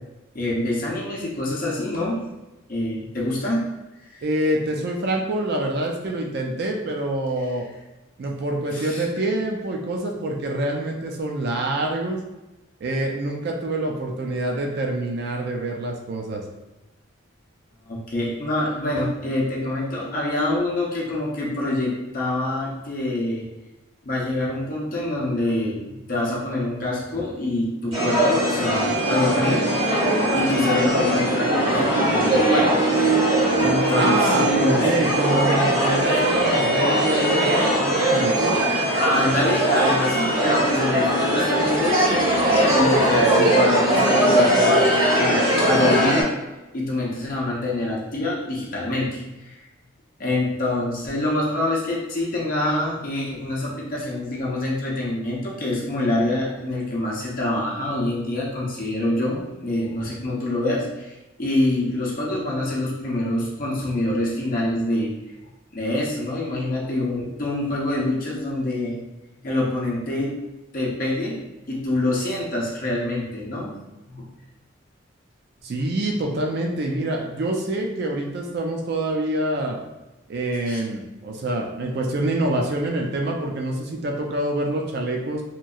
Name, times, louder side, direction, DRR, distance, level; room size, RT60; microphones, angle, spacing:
voice 1, 0.3-2.2 2.7-3.7 4.1-4.2 8.7-9.0 17.9-23.5 24.0-29.7 30.3-32.8 33.6-34.8 39.0-46.3 46.7-49.5 50.2-65.1 65.7-69.0 69.4-70.4 70.7-71.4 71.7-73.7 74.1-74.3 80.7-80.8, left 1 dB, 45° left, -4 dB, 0.6 m, -25 dB
voice 2, 4.2-7.6 8.2-12.2 12.8-16.4 33.9-38.6 75.6-79.8 80.3-85.4, right 1 dB, 50° right, 1 dB, 0.4 m, -26 dB
sound 1, 27.9-46.2, right 1 dB, 75° right, 1.5 m, -20 dB
2.9 x 2.6 x 2.3 m, 1.1 s
head